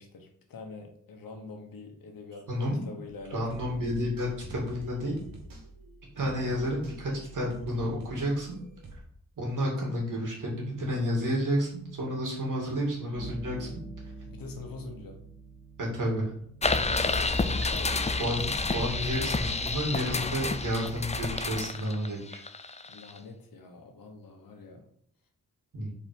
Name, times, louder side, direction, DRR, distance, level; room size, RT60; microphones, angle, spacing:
voice 1, 0.0-2.5 2.8-3.7 14.3-15.3 16.7-18.0 22.9-24.8, left 3 dB, 85° left, 3 dB, 1.3 m, -45 dB
voice 2, 2.5-2.8 3.3-5.2 6.2-8.6 9.4-13.9 15.8-16.3 18.2-22.4 25.7-25.9, equal, 65° right, -2 dB, 2.6 m, -31 dB
sound 1, 3.1-8.9, right 3 dB, 90° right, 1.7 m, -47 dB
sound 2, 10.4-20.1, right 4 dB, 35° right, 2.8 m, -48 dB
sound 3, 16.6-23.2, left 3 dB, 20° left, 0.6 m, -29 dB
4.9 x 4.6 x 5.3 m, 0.67 s
cardioid pair, 55°, 33 cm